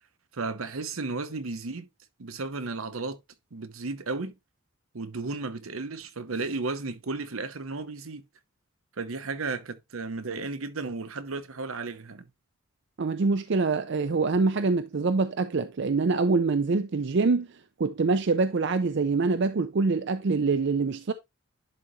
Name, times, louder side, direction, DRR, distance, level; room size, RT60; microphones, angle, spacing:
voice 1, 0.3-1.9 2.2-3.2 3.5-4.4 4.9-8.2 9.0-12.3, right 3 dB, 80° right, 0.9 m, -34 dB
voice 2, 13.0-17.5 17.8-21.1, right 4 dB, 60° right, 0.5 m, -25 dB
10.5 x 3.9 x 3.1 m
head